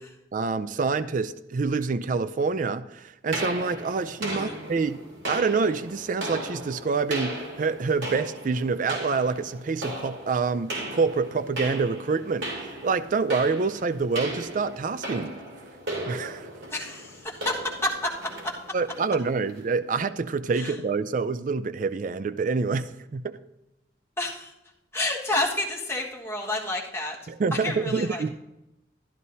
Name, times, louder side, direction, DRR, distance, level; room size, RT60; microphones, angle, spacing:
voice 1, 0.3-5.0 5.3-15.3 16.1-16.5 18.7-23.4 27.3-28.3, right 4 dB, 45° right, 13 dB, 0.4 m, -27 dB
sound 1, 3.3-19.7, right 1 dB, 80° right, 2.5 m, -37 dB
voice 2, 16.7-18.1 18.4-18.5 20.5-20.8 24.2-24.5 24.9-27.2 27.6-28.3, left 2 dB, 15° left, -3 dB, 1.5 m, -29 dB
12.5 x 11.5 x 2.7 m, 0.90 s
head